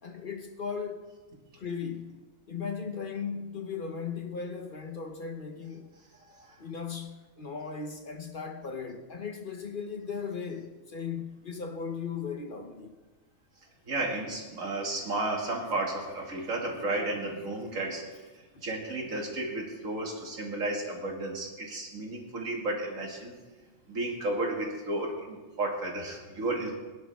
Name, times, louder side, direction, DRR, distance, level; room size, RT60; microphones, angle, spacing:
voice 1, 0.0-1.1 1.6-5.9 6.6-12.9 23.7-23.8, left 6 dB, 45° left, 1.0 m, -37 dB
voice 2, 13.9-18.3 18.6-23.3 23.9-26.7, right 2 dB, 80° right, 2.6 m, -33 dB
21.5 x 10.5 x 3.5 m
omnidirectional pair, 1.4 m